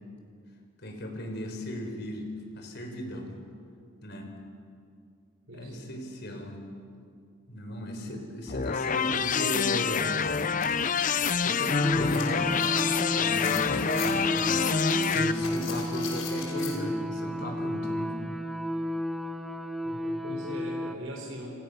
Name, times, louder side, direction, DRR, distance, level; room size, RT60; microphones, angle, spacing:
voice 1, 0.8-2.3 2.6-3.3 4.0-4.3 5.5-6.6 7.5-10.3 11.4-12.6 13.2-14.7 15.0-18.2, equal, 55° left, 3 dB, 5.6 m, -36 dB
voice 2, 5.5-5.9 8.0-8.2 19.8-21.5, right 1 dB, 85° right, -1 dB, 4.9 m, -40 dB
sound 1, 8.5-15.3, left 6 dB, 40° left, 0.8 m, -27 dB
sound 2, 9.8-16.7, left 5 dB, 85° left, 6.0 m, -41 dB
sound 3, 11.8-20.9, left 1 dB, ahead, 1.5 m, -32 dB
29.5 x 28.0 x 7.1 m, 2.4 s
head